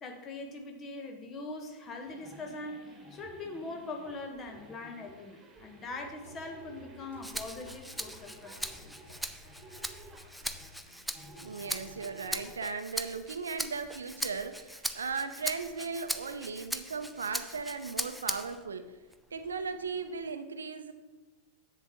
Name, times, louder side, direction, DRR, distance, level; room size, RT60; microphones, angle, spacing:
voice 1, 0.0-8.9, left 2 dB, 25° left, 4 dB, 1.3 m, -42 dB
sound 1, 1.5-12.6, right 1 dB, 15° right, 1.9 m, -53 dB
sound 2, 5.8-12.0, left 3 dB, 65° left, 2.3 m, -58 dB
Rattle (instrument), 7.2-18.7 19.1-20.3, equal, ahead, 0.4 m, -40 dB
voice 2, 11.4-18.9 19.3-20.9, right 5 dB, 70° right, 9 dB, 0.6 m, -37 dB
10.5 x 7.9 x 3.0 m, 1.2 s
figure-of-eight pair, 90°, 0 cm